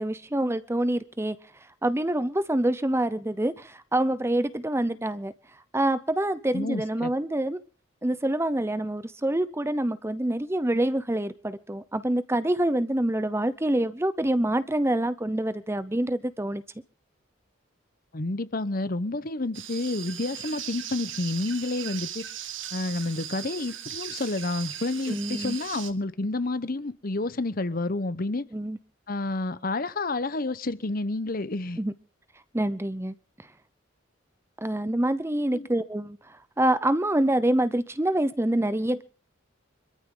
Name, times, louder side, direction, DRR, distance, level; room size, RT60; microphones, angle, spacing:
voice 1, 0.0-1.4 1.8-5.3 5.7-7.6 8.0-16.6 25.1-25.6 28.5-28.8 31.8-31.9 32.5-33.1 34.6-39.0, right 1 dB, 15° right, 0.7 m, -26 dB
voice 2, 6.5-7.1 18.1-22.2 22.7-28.5 29.1-31.8 35.5-35.7, left 2 dB, 45° left, 0.9 m, -29 dB
sound 1, 19.5-25.9, right 10 dB, 70° right, 1.9 m, -38 dB
25.0 x 13.5 x 3.8 m
head